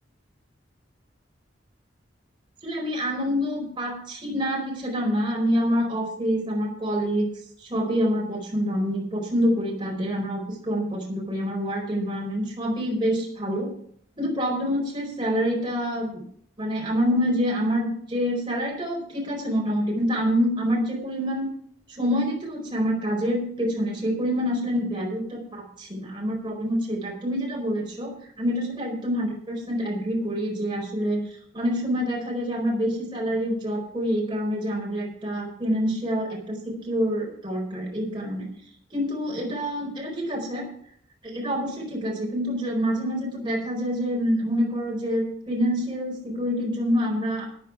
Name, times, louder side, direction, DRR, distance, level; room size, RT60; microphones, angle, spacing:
voice 1, 2.6-7.3 7.6-13.7 14.2-16.2 16.6-21.5 21.9-31.2 31.5-38.5 38.9-40.7 41.2-47.5, equal, 25° right, -1 dB, 4.6 m, -26 dB
13.5 x 9.1 x 4.6 m, 0.62 s
head